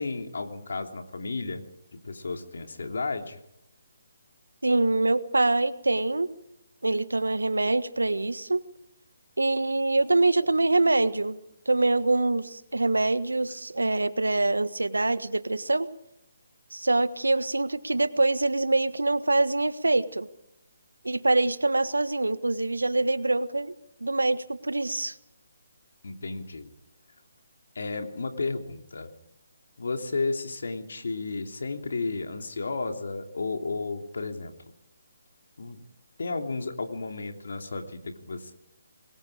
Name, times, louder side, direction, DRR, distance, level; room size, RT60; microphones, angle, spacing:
voice 1, 0.0-1.6 1.9-3.4 26.0-26.7 27.7-29.1 29.8-34.5 35.6-35.8 36.2-38.5, left 3 dB, 70° left, 4 dB, 3.1 m, -33 dB
voice 2, 4.6-6.3 6.8-8.6 9.4-11.4 11.6-15.9 16.7-20.3 21.0-23.7 24.0-25.1, right 2 dB, 85° right, 13 dB, 1.4 m, -24 dB
26.0 x 21.0 x 5.0 m, 0.82 s
figure-of-eight pair, 145°, 0 cm